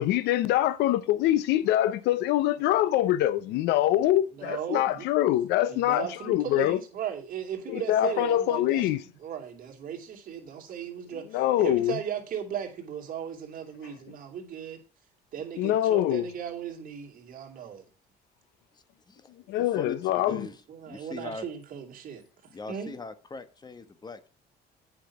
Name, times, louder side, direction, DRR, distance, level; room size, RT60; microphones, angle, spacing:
voice 1, 0.0-6.8 7.7-9.0 11.3-11.9 15.6-16.2 19.5-20.5, left 13 dB, 90° left, 0.6 m, -24 dB
voice 2, 3.8-5.1 5.7-14.8 15.3-17.8 20.3-20.4 20.7-22.2 22.7-22.9, right 8 dB, 55° right, 2.7 m, -37 dB
voice 3, 18.7-20.6 20.9-21.5 22.5-24.3, left 3 dB, 25° left, 1.1 m, -42 dB
8.7 x 5.8 x 5.8 m
cardioid pair, 110°, 17 cm